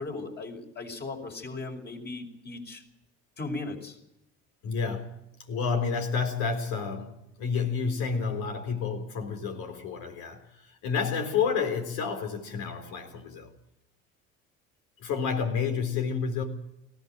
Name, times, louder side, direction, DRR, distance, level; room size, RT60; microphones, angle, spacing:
voice 1, 0.0-2.8 3.4-4.0, left 3 dB, 35° left, 5.4 m, -37 dB
voice 2, 4.6-5.2 5.5-13.5 15.0-16.4, left 5 dB, 80° left, 4.0 m, -30 dB
18.5 x 16.0 x 9.1 m
supercardioid pair, 75°, 30 cm